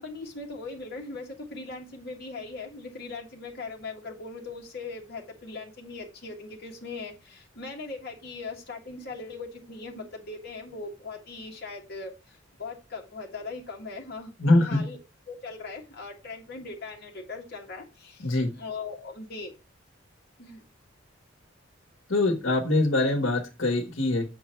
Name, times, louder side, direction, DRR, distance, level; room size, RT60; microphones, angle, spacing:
voice 1, 0.0-15.0 15.3-18.3 18.6-19.5 20.4-20.6, left 3 dB, 55° left, 0 dB, 1.7 m, -39 dB
voice 2, 14.4-14.8 18.2-18.5 22.1-24.2, left 2 dB, 90° left, 4 dB, 1.4 m, -23 dB
7.3 x 4.6 x 4.4 m, 0.28 s
head